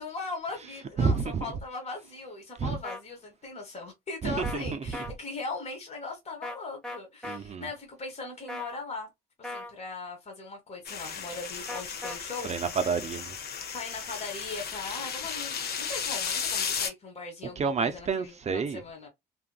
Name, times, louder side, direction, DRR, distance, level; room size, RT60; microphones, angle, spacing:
voice 1, 0.0-9.1 9.4-12.5 13.7-19.1, left 3 dB, 40° left, 1.2 m, -39 dB
voice 2, 1.0-1.4 2.6-2.8 4.2-4.6 7.2-7.7 12.4-13.4 17.6-18.8, right 5 dB, 35° right, 0.5 m, -29 dB
sound 1, 2.8-3.0 4.4-4.6 4.9-5.1 6.4-6.6 6.8-7.4 8.5-8.8 9.4-9.7 11.7-12.2, left 2 dB, 5° left, 0.9 m, -37 dB
sound 2, 10.8-16.9, left 7 dB, 60° left, 0.8 m, -34 dB
2.7 x 2.5 x 2.3 m
supercardioid pair, 70°, 18 cm